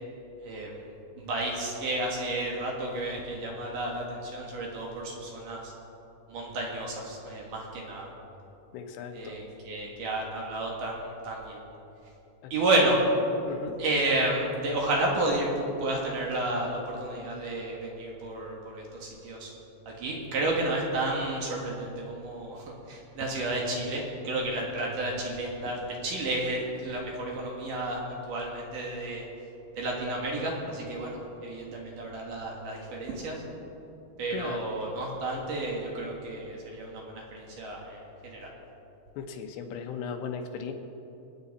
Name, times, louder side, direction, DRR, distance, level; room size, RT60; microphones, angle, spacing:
voice 1, 0.4-0.9 1.2-5.7 6.3-8.1 9.1-11.6 12.5-13.0 13.8-19.5 19.9-29.3 29.7-33.4 34.2-38.5, right 2 dB, 60° right, -1 dB, 2.8 m, -31 dB
voice 2, 8.7-9.4 12.4-12.5 13.5-13.8 34.3-34.7 39.2-40.7, left 6 dB, 90° left, 5 dB, 3.2 m, -37 dB
26.5 x 8.9 x 4.2 m, 2.9 s
omnidirectional pair, 4.9 m